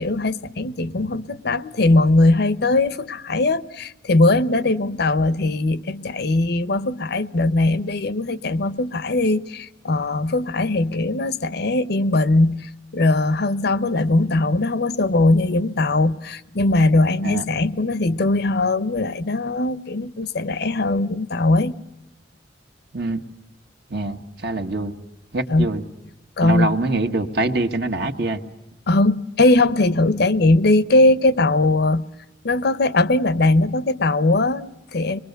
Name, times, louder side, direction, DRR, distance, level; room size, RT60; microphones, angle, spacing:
voice 1, 0.0-21.8 25.5-25.7 26.4-26.7 28.9-32.0 32.4-35.2, left 2 dB, 60° left, 0.8 m, -20 dB
voice 2, 22.9-23.2 23.9-24.9 25.3-25.8 26.4-28.4, right 2 dB, 60° right, 1.6 m, -24 dB
26.0 x 22.0 x 8.1 m
head